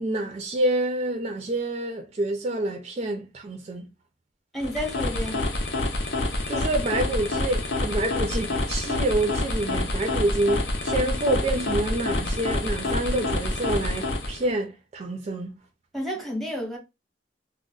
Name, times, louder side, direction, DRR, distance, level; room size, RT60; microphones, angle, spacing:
voice 1, 0.0-3.9 6.5-15.5, right 1 dB, 40° right, 0.4 m, -27 dB
voice 2, 4.5-5.4 15.9-16.8, equal, ahead, 0.8 m, -30 dB
sound 1, 4.6-14.5, left 2 dB, 65° left, 0.6 m, -27 dB
2.3 x 2.0 x 3.7 m
head